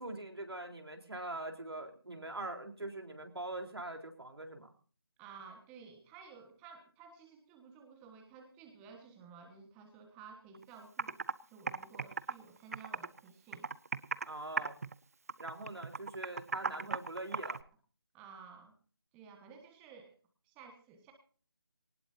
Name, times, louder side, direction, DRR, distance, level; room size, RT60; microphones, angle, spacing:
voice 1, 0.0-4.7 14.2-14.8 15.4-17.6, right 2 dB, 90° right, 5 dB, 3.9 m, -43 dB
voice 2, 5.2-11.2 11.5-13.7 18.1-18.8 19.1-20.1 20.4-21.1, right 5 dB, 10° right, 4 dB, 1.3 m, -54 dB
Computer keyboard, 10.5-10.6 11.0-11.3 11.7-13.2 13.5-14.3 14.6-15.0 15.3-17.6, right 4 dB, 40° right, 0.6 m, -37 dB
19.0 x 19.0 x 2.7 m, 0.41 s
figure-of-eight pair, 165°, 13 cm